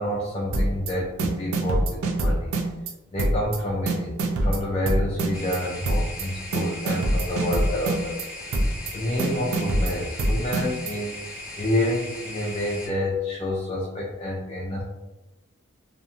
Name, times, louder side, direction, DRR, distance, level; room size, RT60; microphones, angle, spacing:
voice 1, 0.0-2.5 3.1-8.2 8.6-8.7 8.9-14.8, left 1 dB, 30° left, -4 dB, 0.3 m, -28 dB
sound 1, 0.5-0.9 1.2-2.9 3.2-3.6 3.9-5.6 5.9-6.2 6.5-8.2 8.5-8.9 9.2-10.9, right 1 dB, 85° right, 0.4 m, -24 dB
sound 2, 5.3-12.9, left 1 dB, 10° right, 1.1 m, -38 dB
2.5 x 2.4 x 2.6 m, 1.0 s
head